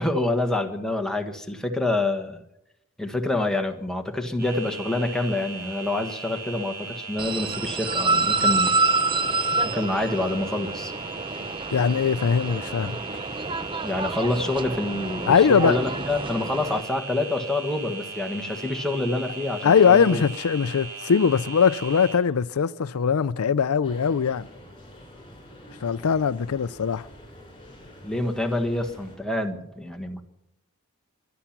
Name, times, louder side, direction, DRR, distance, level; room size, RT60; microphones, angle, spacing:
voice 1, 0.0-2.4 3.0-8.8 9.6-10.9 13.8-20.2 28.0-30.2, left 2 dB, 5° left, 1.4 m, -27 dB
sound 1, 4.4-22.1, right 4 dB, 45° right, 6.6 m, -38 dB
sound 2, 7.2-16.8, right 3 dB, 25° right, 0.6 m, -27 dB
voice 2, 11.7-13.0 15.3-15.8 19.6-24.5 25.8-27.1, left 6 dB, 75° left, 0.5 m, -21 dB
sound 3, 23.8-29.2, equal, 25° left, 6.0 m, -47 dB
22.5 x 10.0 x 6.0 m
head